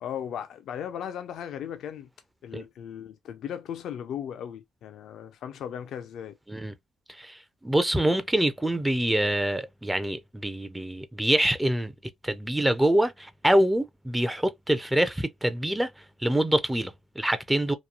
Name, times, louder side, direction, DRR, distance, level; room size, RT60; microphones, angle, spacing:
voice 1, 0.0-2.1 2.4-6.4, left 9 dB, 75° left, 0.4 m, -37 dB
voice 2, 7.1-11.9 12.2-15.9 16.2-17.7, right 1 dB, 10° right, 0.4 m, -25 dB
2.9 x 2.3 x 2.4 m
cardioid pair, 90°, 0 cm